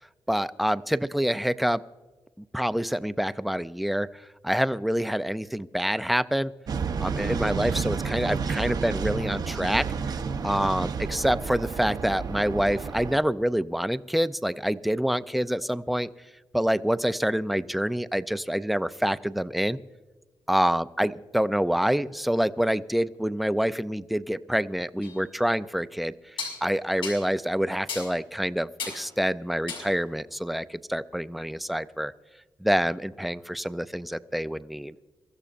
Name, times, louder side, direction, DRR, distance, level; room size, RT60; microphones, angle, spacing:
voice 1, 0.3-1.8 2.5-4.1 4.4-6.5 7.0-9.9 10.4-16.1 16.5-19.8 20.5-26.1 26.6-32.1 32.6-34.9, equal, ahead, 14 dB, 0.4 m, -26 dB
sound 1, 6.7-13.2, right 5 dB, 55° right, 0.8 m, -30 dB
sound 2, 25.0-25.2 26.4-26.6 27.0-27.2 27.9-28.1 28.8-29.1 29.7-30.0, left 5 dB, 85° left, 5.7 m, -34 dB
24.0 x 15.0 x 2.5 m, 1.3 s
wide cardioid pair, 145°, 8 cm